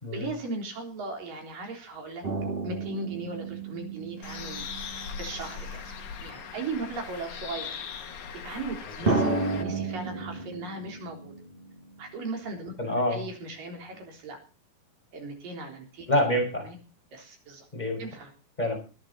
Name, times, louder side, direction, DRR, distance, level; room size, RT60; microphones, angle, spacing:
voice 1, 0.1-2.2 2.6-4.6 4.9-7.8 8.4-11.3 12.0-12.7 13.1-14.4 15.1-16.1 16.6-16.8 17.1-17.7 18.0-18.3, right 3 dB, 65° right, 2 dB, 5.4 m, -38 dB
sound 1, 2.2-6.2 7.1-7.2 9.1-12.4 12.7-12.8, right 3 dB, 25° right, 1.3 m, -32 dB
Bird, 4.2-9.6, left 7 dB, 65° left, 3.5 m, -39 dB
voice 2, 12.8-13.2 16.1-16.7 17.7-18.0 18.6-18.8, left 1 dB, 10° left, 2 dB, 5.8 m, -26 dB
21.0 x 10.5 x 4.2 m, 0.33 s
omnidirectional pair, 4.3 m